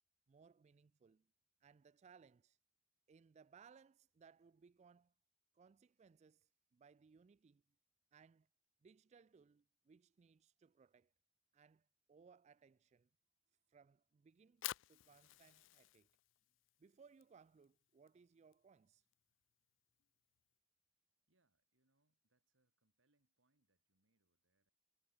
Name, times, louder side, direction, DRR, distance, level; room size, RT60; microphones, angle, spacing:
voice 1, 0.3-1.3 1.6-2.6 3.1-5.1 5.5-7.6 8.1-8.5 8.8-11.1 11.5-13.1 13.7-16.1 16.8-19.1, right 5 dB, 35° right, 0.3 m, -66 dB
Fire, 14.3-20.5, left 15 dB, 70° left, 0.4 m, -54 dB
voice 2, 21.3-24.7, right 2 dB, 75° right, 2.9 m, -85 dB
head